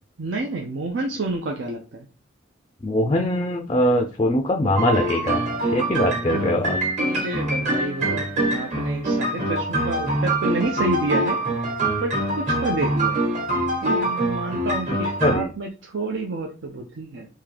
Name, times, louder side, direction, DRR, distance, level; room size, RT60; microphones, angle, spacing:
voice 1, 0.2-2.1 7.1-11.4 12.0-13.3 13.8-17.3, right 2 dB, 70° right, 1 dB, 0.6 m, -29 dB
voice 2, 2.8-5.5 5.7-6.8 15.2-15.5, left 1 dB, 25° left, 5 dB, 0.3 m, -22 dB
sound 1, 4.8-15.4, right 1 dB, 35° right, 1.2 m, -24 dB
3.7 x 2.7 x 3.3 m, 0.34 s
head